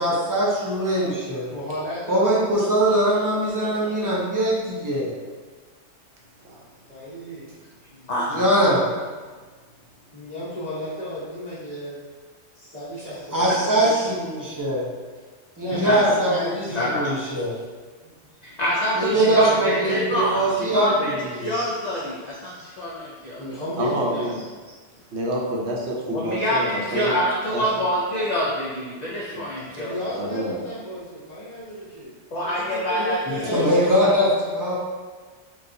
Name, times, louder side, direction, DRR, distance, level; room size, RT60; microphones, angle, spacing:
voice 1, 0.0-1.5 2.1-5.2 8.3-8.9 13.3-14.8 15.6-17.5 19.0-21.5 33.3-34.8, right 1 dB, 35° right, -6 dB, 0.3 m, -22 dB
voice 2, 1.5-2.3 2.6-4.2 6.9-7.4 10.1-12.0 12.5-14.2 15.6-17.0 18.0-18.1 19.1-20.6 23.4-24.4 29.8-32.1 32.4-34.1, equal, 35° left, -14 dB, 0.9 m, -34 dB
voice 3, 8.1-8.7 13.3-14.0 15.7-16.2 16.7-17.1 18.4-23.5 26.2-30.0 32.3-33.6, equal, 70° left, -5 dB, 0.4 m, -26 dB
voice 4, 23.8-24.4 25.1-27.1 27.5-27.7 29.3-29.5 30.1-30.6, right 1 dB, 65° right, -3 dB, 0.9 m, -28 dB
4.0 x 2.3 x 2.6 m, 1.4 s
omnidirectional pair, 1.2 m